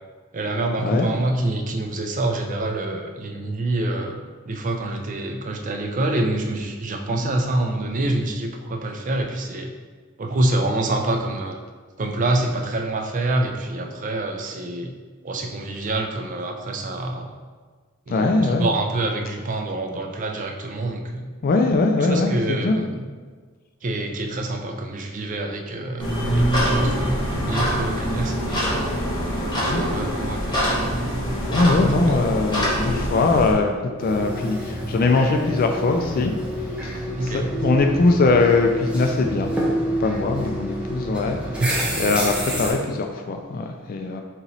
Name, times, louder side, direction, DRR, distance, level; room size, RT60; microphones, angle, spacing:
voice 1, 0.3-4.1 4.5-9.7 10.2-11.6 12.0-14.9 15.2-17.4 18.1-21.3 22.0-23.0 23.8-28.7 29.7-30.8 37.2-37.5 41.6-41.8, right 2 dB, 40° right, 3 dB, 0.4 m, -26 dB
voice 2, 18.1-18.7 21.4-22.8 29.7-29.8 31.5-33.7 34.0-36.3 36.8-39.5 40.0-41.6 42.0-44.2, left 3 dB, 45° left, 4 dB, 0.3 m, -21 dB
sound 1, 26.0-33.5, equal, 20° left, 1.1 m, -24 dB
sound 2, 34.0-42.7, right 1 dB, 5° right, 0.7 m, -28 dB
3.9 x 3.0 x 4.0 m, 1.5 s
head